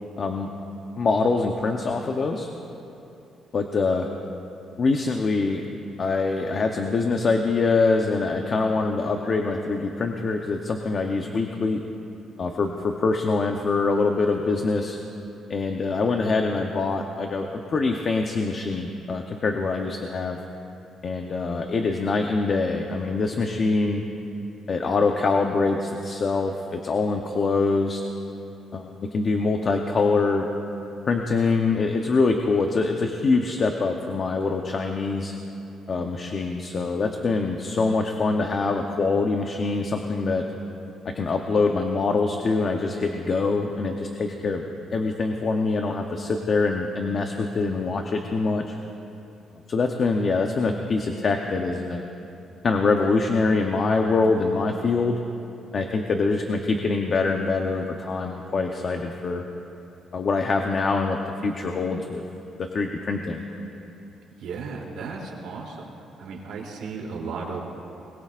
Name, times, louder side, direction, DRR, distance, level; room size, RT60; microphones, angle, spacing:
voice 1, 0.2-0.5 1.0-2.5 3.5-4.1 4.8-5.6 6.0-11.8 12.4-15.0 15.5-20.4 21.0-24.0 24.7-28.0 28.7-30.5 31.1-35.3 35.9-40.4 41.1-44.7 44.9-48.8 49.7-52.0 52.6-55.2 55.7-59.4 60.1-62.2 62.6-63.8, left 3 dB, 35° left, 3 dB, 0.8 m, -24 dB
voice 2, 64.4-65.9 66.2-67.6, right 4 dB, 85° right, -2 dB, 2.9 m, -34 dB
21.5 x 21.5 x 2.5 m, 2.8 s
cardioid pair, 150°, 0 cm